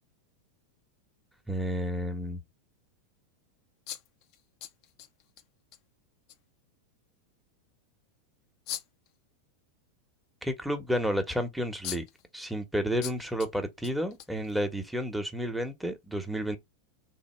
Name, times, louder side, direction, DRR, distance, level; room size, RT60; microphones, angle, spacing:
voice 1, 1.5-2.4 10.4-12.0 12.3-16.6, equal, ahead, 1.1 m, -31 dB
sound 1, 3.9-5.4 5.7-5.8 6.3-6.4 8.7-9.1 11.3-11.4 11.8-12.2 13.0-13.5 13.8-14.8, left 11 dB, 50° left, 0.6 m, -40 dB
3.6 x 2.8 x 4.3 m
hypercardioid pair, 100°, 0 cm